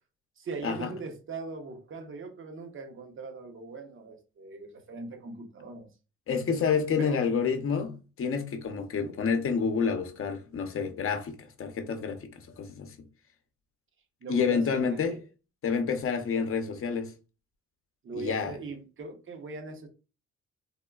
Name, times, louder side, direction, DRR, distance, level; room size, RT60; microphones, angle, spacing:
voice 1, 0.4-5.9 7.0-7.2 9.0-9.2 14.2-15.2 18.0-19.9, right 4 dB, 40° right, 0.8 m, -40 dB
voice 2, 6.3-12.9 14.3-15.2 15.6-17.1 18.1-18.5, left 6 dB, 45° left, 0.7 m, -29 dB
3.5 x 2.1 x 2.3 m
cardioid pair, 90°, 30 cm